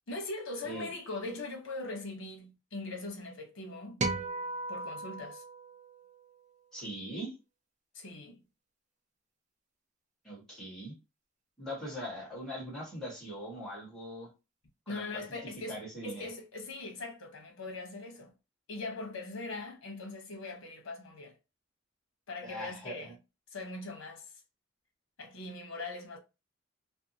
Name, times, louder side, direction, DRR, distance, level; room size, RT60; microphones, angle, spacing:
voice 1, 0.1-4.0 4.7-5.4 7.9-8.4 14.9-18.3 18.7-21.4 22.3-23.1 23.5-24.3 25.2-26.2, left 2 dB, 90° left, 0.9 m, -41 dB
sound 1, 4.0-6.5, right 3 dB, 35° right, 0.4 m, -37 dB
voice 2, 6.7-7.3 10.2-10.9 11.6-14.3 14.9-15.2 15.7-16.2 22.4-23.1, equal, 5° left, 1.4 m, -41 dB
2.7 x 2.3 x 2.6 m
head